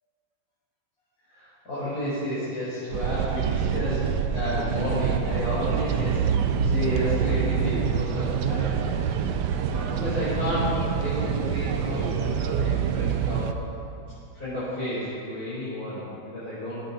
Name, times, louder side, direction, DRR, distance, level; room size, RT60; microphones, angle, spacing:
voice 1, 1.3-6.2 6.6-13.6 14.3-16.8, left 1 dB, 50° left, -12 dB, 5.3 m, -31 dB
sound 1, 2.9-13.5, right 7 dB, 70° right, 1.2 m, -26 dB
17.0 x 15.0 x 4.2 m, 2.6 s
omnidirectional pair, 2.0 m